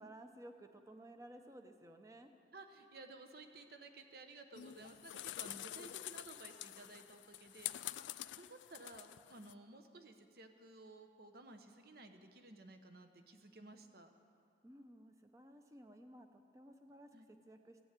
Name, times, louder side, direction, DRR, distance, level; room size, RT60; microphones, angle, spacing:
voice 1, 0.0-2.3 14.6-17.8, right 1 dB, 15° right, 6 dB, 0.7 m, -56 dB
voice 2, 2.5-8.1 8.3-14.1 17.1-17.3, right 2 dB, 55° right, 6 dB, 0.9 m, -56 dB
sound 1, 4.5-9.5, left 14 dB, 75° left, 0.3 m, -47 dB
16.0 x 7.0 x 8.9 m, 2.4 s
head